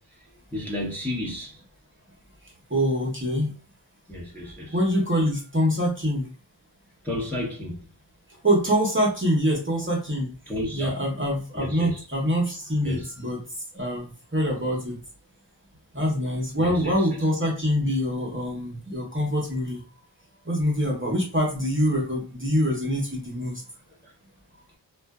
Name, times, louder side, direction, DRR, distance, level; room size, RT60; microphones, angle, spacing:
voice 1, 0.5-1.6 4.1-4.8 7.0-7.8 10.5-10.9 11.5-12.0 12.8-13.1 16.6-17.1 24.0-24.1, left 1 dB, 5° left, 0.9 m, -32 dB
voice 2, 2.7-3.5 4.7-6.2 8.4-10.3 10.7-13.4 13.7-14.1 14.3-15.0 15.9-19.8 20.5-23.6, equal, 25° right, 0.9 m, -25 dB
2.5 x 2.3 x 2.3 m
wide cardioid pair, 45°, 47 cm